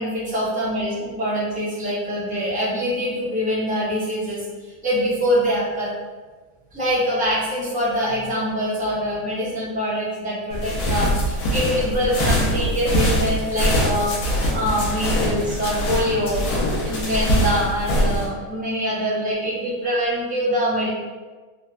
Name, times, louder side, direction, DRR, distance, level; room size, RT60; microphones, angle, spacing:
voice 1, 0.0-4.4 4.8-5.9 6.7-14.1 14.5-16.5 16.8-20.9, equal, 10° right, -10 dB, 0.6 m, -24 dB
sound 1, 10.5-18.3, equal, 75° left, 1.1 m, -22 dB
3.1 x 2.1 x 2.3 m, 1.3 s
omnidirectional pair, 1.7 m